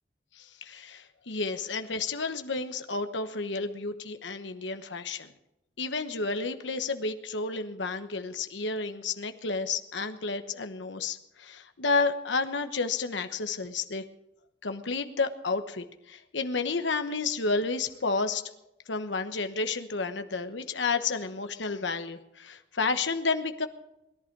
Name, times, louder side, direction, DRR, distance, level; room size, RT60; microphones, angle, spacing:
voice 1, 0.4-5.3 5.8-14.0 14.6-18.4 18.9-23.7, left 4 dB, 85° left, 8 dB, 1.1 m, -31 dB
21.0 x 11.5 x 4.7 m, 0.90 s
head